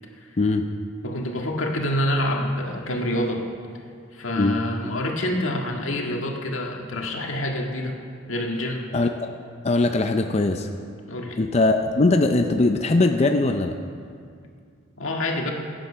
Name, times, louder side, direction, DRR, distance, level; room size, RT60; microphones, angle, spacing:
voice 1, 0.4-0.7 4.4-4.6 8.9-9.4 9.6-10.7 11.4-13.8, left 2 dB, 35° left, 5 dB, 0.5 m, -21 dB
voice 2, 1.0-3.4 4.1-8.0 8.3-8.8 11.1-11.4 15.0-15.5, left 1 dB, 85° left, 1 dB, 1.8 m, -27 dB
17.5 x 8.9 x 5.6 m, 2.2 s
head